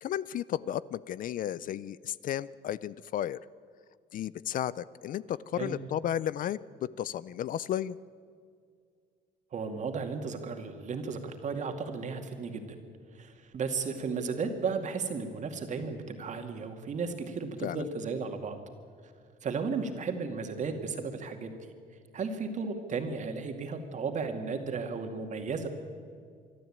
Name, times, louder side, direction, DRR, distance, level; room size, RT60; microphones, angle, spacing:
voice 1, 0.0-3.4 4.1-8.0 17.6-17.8, left 11 dB, 55° left, 19 dB, 0.5 m, -33 dB
voice 2, 9.5-12.8 13.1-18.6 19.0-19.1 19.4-21.5 22.1-25.7, right 5 dB, 45° right, 5 dB, 2.3 m, -34 dB
24.5 x 12.5 x 8.7 m, 2.2 s
cardioid pair, 110°, 17 cm